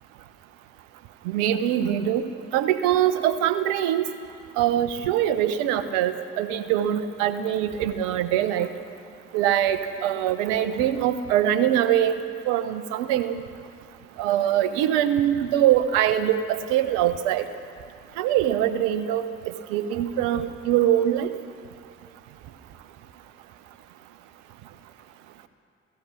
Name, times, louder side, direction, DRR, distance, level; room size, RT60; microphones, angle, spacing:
voice 1, 1.3-2.2 2.5-4.0 4.6-8.7 9.3-12.1 12.5-13.4 14.2-17.4 18.2-19.2 19.7-21.3, right 11 dB, 75° right, 12 dB, 1.1 m, -23 dB
29.0 x 17.0 x 6.3 m, 2.3 s
hypercardioid pair, 40°, 30 cm